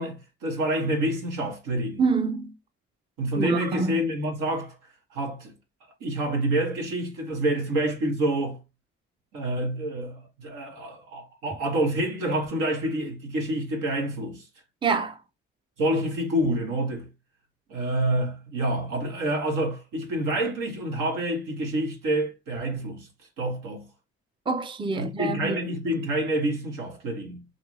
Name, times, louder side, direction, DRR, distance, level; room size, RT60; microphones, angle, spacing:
voice 1, 0.0-2.0 3.2-4.8 5.1-5.5 6.0-8.6 9.3-14.5 15.8-17.1 17.7-23.1 23.4-23.9 24.9-27.4, right 1 dB, 80° right, 1.1 m, -27 dB
voice 2, 2.0-2.5 3.4-4.0 14.8-15.2 24.5-25.6, right 4 dB, 15° right, 0.5 m, -26 dB
2.7 x 2.5 x 3.1 m
supercardioid pair, 50°, 31 cm